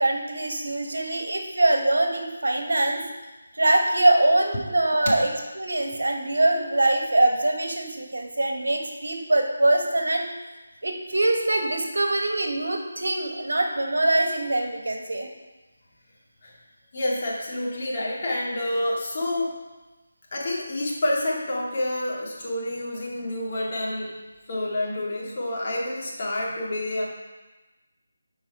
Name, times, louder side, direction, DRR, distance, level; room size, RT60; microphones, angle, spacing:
voice 1, 0.0-3.0 3.5-5.3 5.6-10.2 10.8-15.3, right 2 dB, 70° right, 3 dB, 1.3 m, -23 dB
voice 2, 16.9-19.5 20.3-24.1 24.5-27.0, left 1 dB, 40° left, -4 dB, 2.2 m, -28 dB
10.5 x 4.7 x 4.7 m, 1.1 s
figure-of-eight pair, 160°, 0 cm